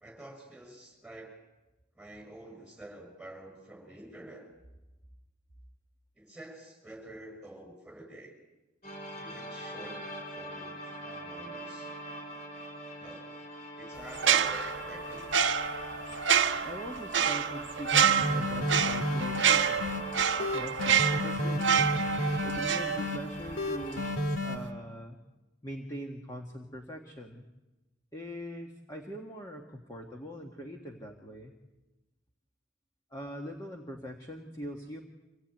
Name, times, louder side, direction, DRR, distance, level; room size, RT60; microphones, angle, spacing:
voice 1, 0.0-1.4 1.9-4.5 6.2-8.3 9.2-10.0 10.3-11.9 13.0-13.4 13.8-15.3, right 1 dB, 5° right, 3 dB, 6.6 m, -48 dB
sound 1, 8.8-24.1, equal, 40° left, 6.2 m, -43 dB
sound 2, 14.1-23.5 23.8-24.0, right 8 dB, 60° right, 1.0 m, -28 dB
voice 2, 16.6-19.9 20.4-22.0 22.4-24.1 24.4-25.2 25.6-27.5 28.1-31.5 33.1-35.0, equal, 15° left, 1 dB, 1.7 m, -42 dB
sound 3, 17.9-20.0 20.4-23.2 23.6-24.6, left 1 dB, 80° left, 2.4 m, -31 dB
25.5 x 18.0 x 9.0 m, 1.1 s
head